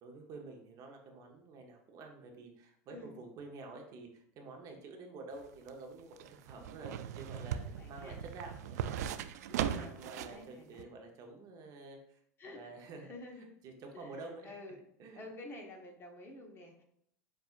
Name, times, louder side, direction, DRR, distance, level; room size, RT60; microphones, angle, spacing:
voice 1, 0.0-12.2 12.4-13.1 13.6-14.5 15.0-15.2, right 3 dB, 45° right, 2 dB, 0.9 m, -49 dB
sound 1, 5.3-10.4 10.8-10.9, right 9 dB, 80° right, 0.3 m, -38 dB
voice 2, 7.5-8.2 9.5-10.9 12.4-12.8 13.0-13.5 13.9-14.8 15.1-16.8, left 2 dB, 25° left, 1 dB, 1.1 m, -50 dB
7.1 x 2.6 x 2.5 m, 0.68 s
supercardioid pair, 115°, 9 cm